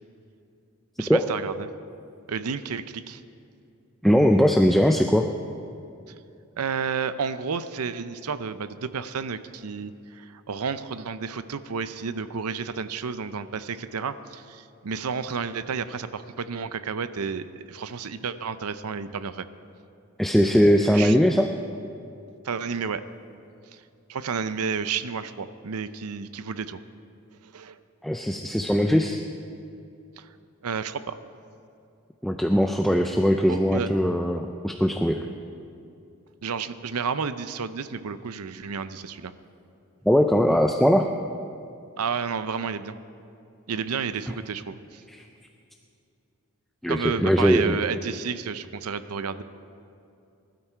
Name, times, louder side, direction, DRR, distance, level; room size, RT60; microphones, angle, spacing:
voice 1, 1.0-1.7 2.3-3.2 6.6-19.5 20.9-21.2 22.4-23.0 23.7-23.8 24.1-26.8 27.4-27.8 30.2-30.3 30.6-31.2 33.5-33.9 36.4-39.3 42.0-42.9 43.7-45.0 46.9-49.4, right 5 dB, 85° right, 13 dB, 0.6 m, -31 dB
voice 2, 4.0-5.3 20.2-21.5 28.0-29.2 32.2-35.3 40.1-41.1 45.1-45.3 46.8-47.7, equal, ahead, 3 dB, 0.4 m, -20 dB
20.0 x 12.5 x 4.5 m, 2.6 s
head